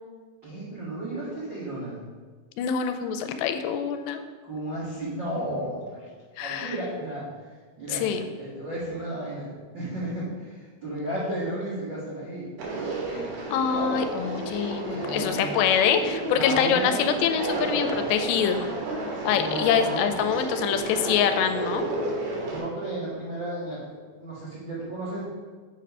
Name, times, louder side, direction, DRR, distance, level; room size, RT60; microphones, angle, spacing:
voice 1, 0.4-2.0 4.4-6.1 6.4-7.3 7.8-8.1 8.4-12.5 14.9-15.5 16.3-17.0 19.3-20.3 22.3-25.2, right 1 dB, 85° right, -9 dB, 1.0 m, -33 dB
voice 2, 2.6-4.2 6.4-6.7 7.9-8.3 13.1-13.2 13.5-18.7 19.2-21.9, left 8 dB, 85° left, 8 dB, 2.7 m, -25 dB
Conversation, 12.6-22.6, right 2 dB, 70° right, 3.5 m, -32 dB
7.7 x 4.2 x 5.4 m, 1.4 s
omnidirectional pair, 5.0 m